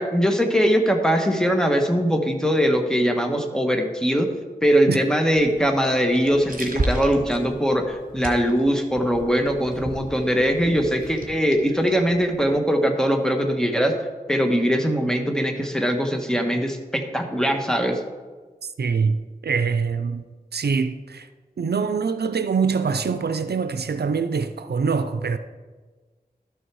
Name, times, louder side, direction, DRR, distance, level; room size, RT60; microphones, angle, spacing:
voice 1, 0.0-4.3 4.6-13.9 14.3-18.0, equal, 5° left, 1.3 m, -21 dB
sound 1, 5.3-12.6, right 2 dB, 55° right, 1.5 m, -34 dB
voice 2, 18.8-19.2 19.4-20.3 20.5-21.3 21.6-25.4, right 5 dB, 80° right, 0.5 m, -24 dB
12.5 x 6.4 x 4.7 m
wide cardioid pair, 60°, 17 cm